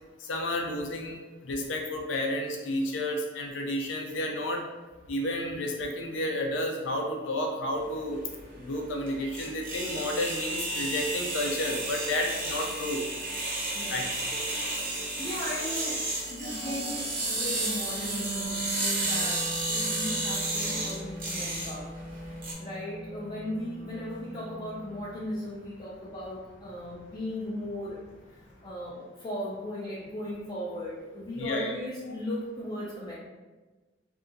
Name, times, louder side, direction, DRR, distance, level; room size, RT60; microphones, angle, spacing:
voice 1, 0.2-4.6 5.1-8.2 8.6-13.0 13.9-14.0 14.3-14.4 31.4-31.8, left 1 dB, 85° left, 2 dB, 0.5 m, -31 dB
sound 1, 7.8-22.5, right 2 dB, 45° right, 0.6 m, -32 dB
voice 2, 13.7-14.1 15.2-16.0 16.3-21.9 22.3-28.0 28.3-33.1, left 1 dB, 25° left, -8 dB, 0.4 m, -37 dB
sound 2, 16.4-28.7, right 1 dB, 65° left, 0.8 m, -42 dB
2.7 x 2.3 x 2.5 m, 1.2 s
head